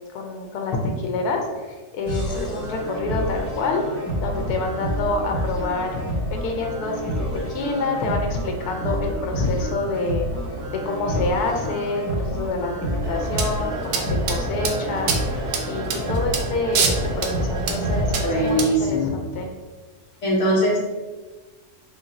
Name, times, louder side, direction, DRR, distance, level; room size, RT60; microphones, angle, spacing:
voice 1, 0.1-3.8 4.2-6.0 6.3-10.3 10.7-15.4 15.6-19.5, left 3 dB, 85° left, 2 dB, 1.1 m, -27 dB
sound 1, 2.1-18.1, right 1 dB, 10° left, 1.0 m, -29 dB
sound 2, 13.0-18.7, right 4 dB, 85° right, 1.1 m, -27 dB
voice 2, 18.2-19.1 20.2-20.8, equal, 60° left, -4 dB, 1.2 m, -21 dB
3.4 x 2.5 x 3.9 m, 1.3 s
omnidirectional pair, 1.6 m